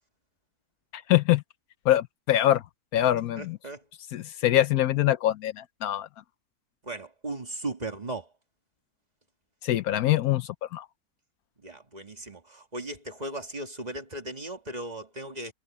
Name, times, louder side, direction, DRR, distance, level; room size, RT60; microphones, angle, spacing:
voice 1, 0.9-1.4 1.9-2.6 2.9-3.6 4.1-6.1 9.6-10.9, left 13 dB, 75° left, 1.1 m, -24 dB
voice 2, 3.4-3.8 6.8-8.3 11.6-15.5, right 2 dB, 25° right, 2.1 m, -37 dB
omnidirectional pair, 1.6 m